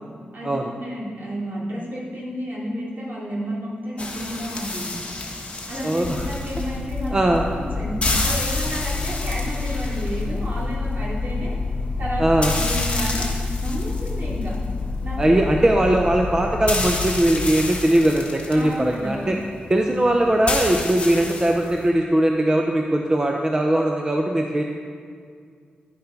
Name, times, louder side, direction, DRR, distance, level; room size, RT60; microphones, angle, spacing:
voice 1, 0.7-4.9 5.7-7.2 7.5-11.5 12.0-12.3 12.5-13.3 13.6-14.6 15.0-15.2 18.5-19.4, equal, 55° right, -6 dB, 2.9 m, -31 dB
sound 1, 4.0-21.9, left 2 dB, 35° left, 1.4 m, -31 dB
voice 2, 5.8-6.3 7.1-7.4 12.2-12.5 15.2-19.4 19.7-24.6, right 1 dB, 20° right, 2 dB, 0.6 m, -20 dB
sound 2, 6.0-19.0, left 3 dB, 75° left, 0.7 m, -29 dB
11.0 x 7.0 x 5.2 m, 2.1 s
wide cardioid pair, 130°, 3 cm